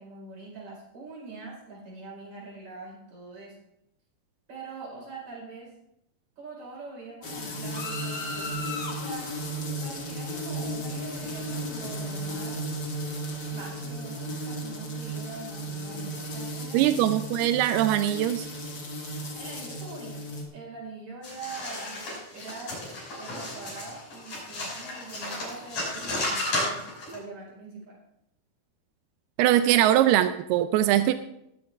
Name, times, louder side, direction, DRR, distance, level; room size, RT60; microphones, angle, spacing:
voice 1, 0.0-3.6 4.5-5.7 6.4-9.4 9.8-12.6 13.5-17.0 19.3-20.2 20.5-22.8 23.2-26.9 27.1-28.0, right 4 dB, 45° right, -4 dB, 6.0 m, -43 dB
sound 1, 7.2-20.4, equal, 35° left, 2.0 m, -34 dB
voice 2, 16.7-18.5 29.4-31.1, right 12 dB, 90° right, 10 dB, 2.6 m, -22 dB
sound 2, 21.2-27.2, left 2 dB, 55° left, 7.8 m, -33 dB
20.0 x 9.2 x 3.5 m, 0.79 s
omnidirectional pair, 4.4 m